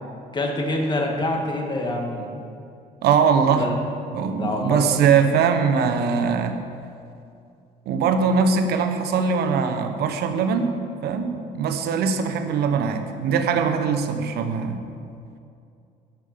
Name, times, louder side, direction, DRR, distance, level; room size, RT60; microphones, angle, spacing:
voice 1, 0.3-2.5 3.5-3.8 4.3-4.9, left 1 dB, 25° left, 1 dB, 1.8 m, -26 dB
voice 2, 3.0-3.6 4.1-6.6 7.9-14.8, right 6 dB, 70° right, 7 dB, 1.0 m, -21 dB
10.5 x 5.7 x 8.5 m, 2.5 s
cardioid pair, 110°, 17 cm